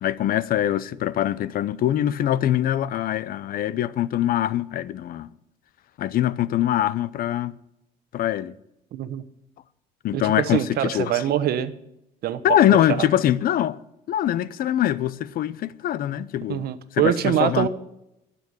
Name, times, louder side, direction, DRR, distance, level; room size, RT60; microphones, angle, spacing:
voice 1, 0.0-5.3 6.0-7.5 8.1-8.5 10.0-11.2 12.4-13.8 14.1-16.6 16.9-17.7, left 12 dB, 60° left, 0.6 m, -23 dB
voice 2, 8.9-9.2 10.1-11.7 12.2-12.4 12.7-13.1 16.5-17.7, right 11 dB, 65° right, 1.0 m, -24 dB
12.5 x 7.1 x 9.0 m
cardioid pair, 110°, 17 cm